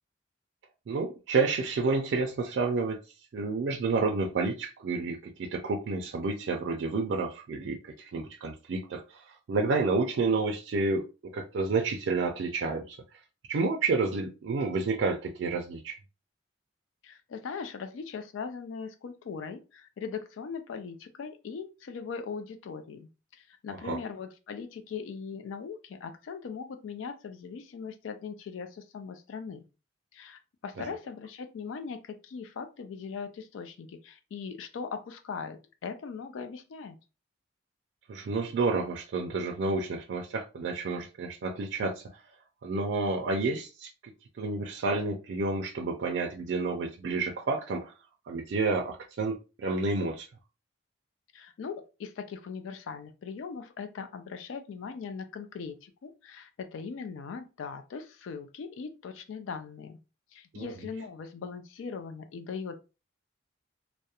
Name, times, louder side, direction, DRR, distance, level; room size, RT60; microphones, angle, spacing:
voice 1, 0.9-3.0 3.3-13.0 13.5-16.0 23.8-24.0 30.8-30.9 38.1-42.2 42.6-43.9 44.4-47.9 48.3-50.3 60.5-60.7, right 3 dB, 70° right, 0.3 m, -30 dB
voice 2, 17.0-23.1 23.4-29.6 30.1-37.0 51.3-60.0 60.3-62.8, left 5 dB, 85° left, 0.4 m, -40 dB
2.3 x 2.0 x 2.8 m
head